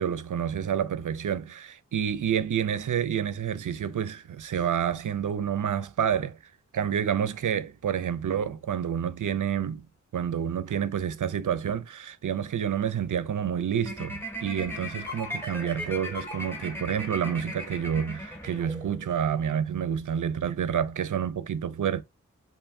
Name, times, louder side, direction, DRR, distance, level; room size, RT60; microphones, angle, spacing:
voice 1, 0.0-6.4 6.7-9.9 10.1-22.0, right 8 dB, 75° right, 0.5 m, -29 dB
sound 1, 13.8-19.1, left 1 dB, 5° left, 3.2 m, -37 dB
7.7 x 2.6 x 2.6 m
wide cardioid pair, 80°, 31 cm